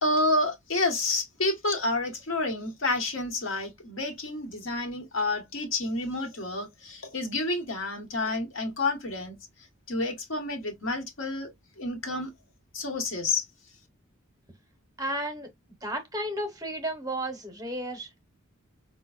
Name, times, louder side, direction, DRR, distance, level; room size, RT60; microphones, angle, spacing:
voice 1, 0.0-9.4 9.9-11.5 11.8-12.3 12.7-13.5, left 2 dB, 70° left, 1.1 m, -29 dB
voice 2, 15.0-15.5 15.8-18.2, right 1 dB, 20° right, 0.8 m, -33 dB
5.0 x 2.1 x 2.3 m
head